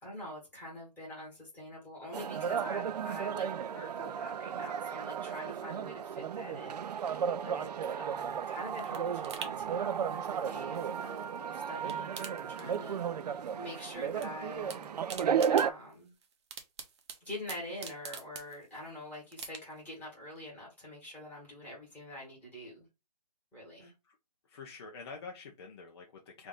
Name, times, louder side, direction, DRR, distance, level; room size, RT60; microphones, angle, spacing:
voice 1, 0.0-15.0 15.5-16.1 17.2-22.9 23.5-23.9, left 1 dB, 10° left, -4 dB, 1.6 m, -45 dB
sound 1, 2.1-15.7, right 8 dB, 75° right, 0.4 m, -34 dB
sound 2, 8.1-11.4 11.7-13.2 13.5-14.3 14.5-18.9 19.3-19.9 20.3-20.4, right 6 dB, 40° right, 0.7 m, -47 dB
voice 2, 23.8-24.2 24.4-26.5, left 4 dB, 40° left, 1 dB, 0.7 m, -47 dB
3.3 x 2.6 x 3.9 m, 0.25 s
hypercardioid pair, 155°, 21 cm